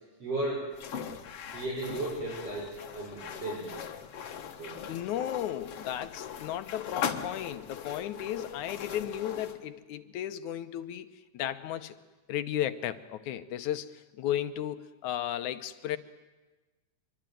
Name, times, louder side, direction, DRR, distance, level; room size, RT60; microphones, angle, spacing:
voice 1, 0.2-0.7 1.5-3.8 4.6-4.8, right 2 dB, 55° right, -5 dB, 7.4 m, -35 dB
sound 1, 0.7-9.6, left 8 dB, 60° left, 2.2 m, -40 dB
voice 2, 4.9-12.0 12.3-16.0, left 11 dB, 85° left, 10 dB, 2.4 m, -34 dB
24.5 x 23.0 x 9.3 m, 1.2 s
omnidirectional pair, 3.3 m